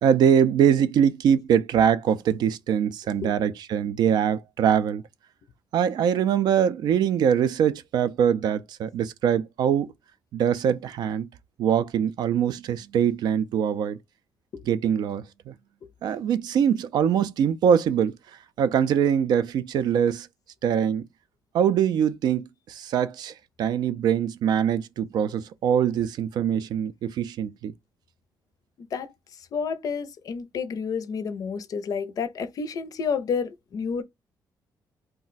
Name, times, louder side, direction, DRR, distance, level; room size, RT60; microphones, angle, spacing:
voice 1, 0.0-5.0 5.7-9.9 10.3-11.3 11.6-14.0 14.7-15.5 16.0-18.2 18.6-20.3 20.6-21.1 21.5-27.7, right 8 dB, 70° right, 0.4 m, -23 dB
voice 2, 28.8-29.1 29.5-34.0, left 6 dB, 55° left, 0.5 m, -30 dB
2.3 x 2.1 x 3.9 m
cardioid pair, 120°, 7 cm